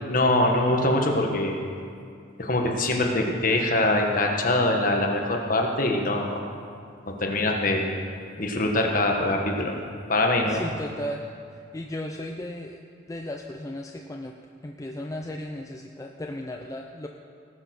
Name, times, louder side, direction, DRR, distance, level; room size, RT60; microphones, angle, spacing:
voice 1, 0.1-1.6 2.4-6.4 7.1-7.8 8.4-9.7 10.1-10.6, left 2 dB, 45° left, 1 dB, 1.4 m, -23 dB
voice 2, 10.5-11.2 11.5-12.8 13.1-14.3 14.6-17.1, left 1 dB, 15° left, 2 dB, 0.5 m, -35 dB
18.5 x 7.0 x 6.0 m, 2.3 s
head